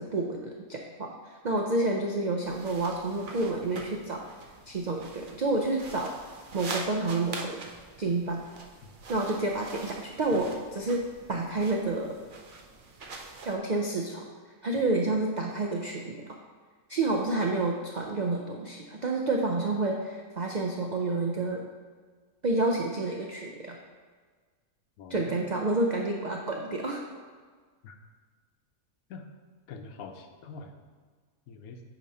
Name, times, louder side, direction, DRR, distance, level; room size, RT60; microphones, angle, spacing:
voice 1, 0.0-4.3 4.7-6.1 6.5-7.6 8.0-8.4 9.1-11.0 11.3-12.2 13.5-14.3 14.6-16.3 16.9-21.6 22.4-23.8 25.1-27.0, right 2 dB, 85° right, 1 dB, 0.4 m, -29 dB
sound 1, 2.4-13.6, right 3 dB, 50° right, 0.6 m, -44 dB
voice 2, 25.0-25.4 27.8-28.0 29.1-29.3 29.7-30.7 31.5-31.8, left 5 dB, 80° left, 5 dB, 1.1 m, -44 dB
8.7 x 3.0 x 5.4 m, 1.5 s
omnidirectional pair, 1.5 m